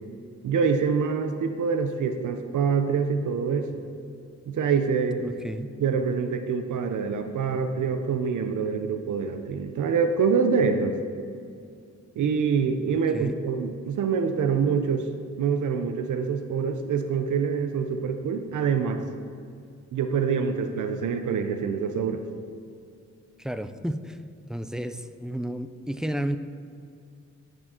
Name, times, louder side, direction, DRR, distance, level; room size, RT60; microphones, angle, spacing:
voice 1, 0.4-3.8 4.5-5.2 5.8-11.0 12.2-15.1 15.4-19.0 19.9-22.2, right 6 dB, 85° right, 7 dB, 0.6 m, -25 dB
voice 2, 5.2-5.7 12.9-13.4 23.4-24.2 24.5-26.4, right 1 dB, ahead, 10 dB, 0.4 m, -32 dB
8.9 x 6.2 x 4.3 m, 2.4 s
cardioid pair, 70°, 30 cm